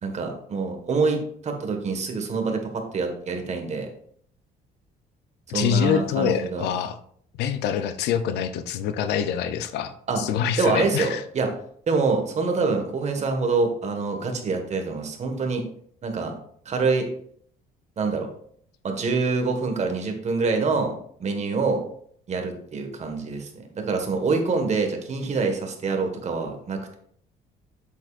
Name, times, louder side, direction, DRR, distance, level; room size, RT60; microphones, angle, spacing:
voice 1, 0.0-3.9 5.5-6.7 10.1-10.2 10.6-11.5 11.9-15.6 16.0-16.3 16.6-17.1 18.0-18.3 18.8-20.9 21.2-21.8 22.3-23.5 23.8-27.0, right 4 dB, 40° right, 4 dB, 1.6 m, -25 dB
voice 2, 5.5-7.0 7.4-11.2, left 8 dB, 85° left, 11 dB, 0.7 m, -25 dB
7.9 x 7.3 x 2.5 m, 0.62 s
cardioid pair, 110°, 17 cm